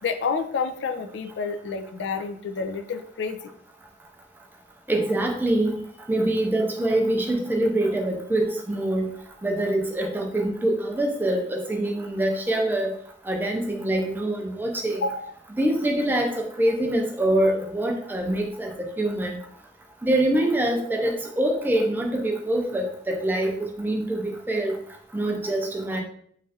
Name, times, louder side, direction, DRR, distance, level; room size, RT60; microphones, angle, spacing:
voice 1, 0.0-3.4 14.9-15.3, left 5 dB, 85° left, 7 dB, 0.3 m, -29 dB
voice 2, 4.9-5.8 6.1-9.1 9.4-13.0 13.3-15.0 15.6-19.4 20.0-24.8 25.1-26.0, right 1 dB, 10° right, 1 dB, 0.4 m, -24 dB
3.2 x 2.3 x 2.7 m, 0.63 s
head